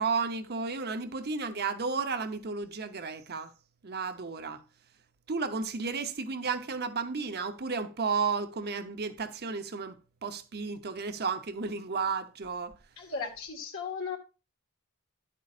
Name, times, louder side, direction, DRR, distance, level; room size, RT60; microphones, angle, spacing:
voice 1, 0.0-3.5 3.8-4.6 5.3-12.7, right 5 dB, 50° right, 0.9 m, -33 dB
voice 2, 13.0-14.2, left 5 dB, 65° left, 1.9 m, -36 dB
11.0 x 8.4 x 2.5 m
head